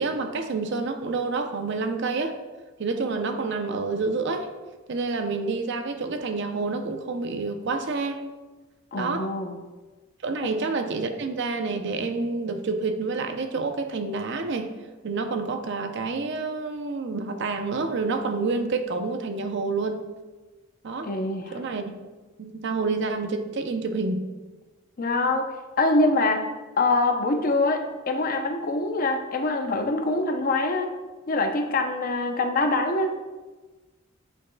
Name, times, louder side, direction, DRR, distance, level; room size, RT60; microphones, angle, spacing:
voice 1, 0.0-2.4 2.8-4.5 4.9-8.2 8.9-9.3 10.2-14.7 15.0-20.1 20.8-21.1 21.5-21.8 22.4-24.2, right 3 dB, 55° right, 0.5 m, -28 dB
voice 2, 8.9-9.6 10.4-10.5 21.0-21.6 25.0-25.5 25.8-26.5 26.8-30.9 31.3-33.1, left 2 dB, 45° left, 0.6 m, -24 dB
8.1 x 6.3 x 2.2 m
head